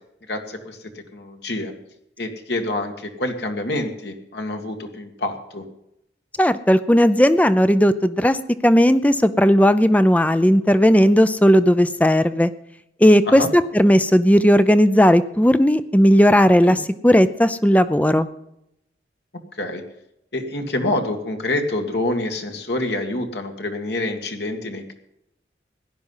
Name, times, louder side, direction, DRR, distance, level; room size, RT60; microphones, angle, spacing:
voice 1, 0.3-1.8 2.2-5.7 13.3-13.5 16.6-16.8 19.5-19.8 20.3-24.9, left 2 dB, 70° left, 4 dB, 1.9 m, -27 dB
voice 2, 6.4-8.4 8.6-12.5 13.0-18.3, equal, 10° left, 13 dB, 0.5 m, -15 dB
16.5 x 11.0 x 5.6 m, 0.80 s
head